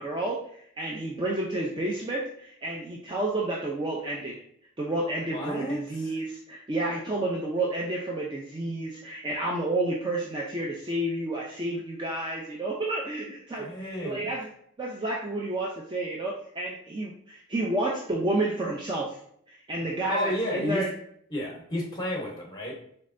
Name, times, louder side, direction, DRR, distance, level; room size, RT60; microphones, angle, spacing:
voice 1, 0.0-4.3 4.8-14.5 14.8-19.2 19.5-20.9, right 2 dB, 20° right, -2 dB, 0.4 m, -30 dB
voice 2, 5.3-6.2 13.6-14.3 20.1-20.8 21.3-22.8, left 1 dB, 20° left, -1 dB, 0.8 m, -32 dB
4.2 x 3.2 x 2.5 m, 0.66 s
head